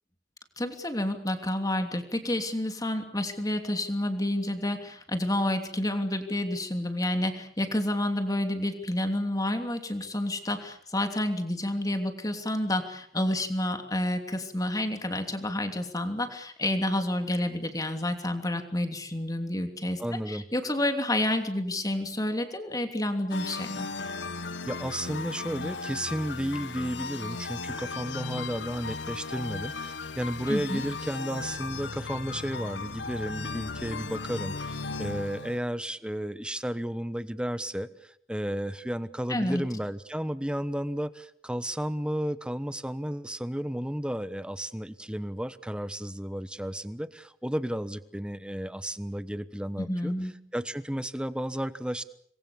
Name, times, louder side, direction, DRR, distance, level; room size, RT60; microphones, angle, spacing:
voice 1, 0.6-20.0 20.3-23.9 30.5-30.8 39.3-39.6 49.8-50.3, left 1 dB, 20° left, 6 dB, 3.0 m, -29 dB
voice 2, 20.0-20.5 24.7-50.1 50.5-52.0, equal, 5° right, 13 dB, 1.1 m, -33 dB
sound 1, 23.3-35.6, left 4 dB, 80° left, 1.2 m, -36 dB
27.5 x 22.0 x 7.1 m, 0.65 s
head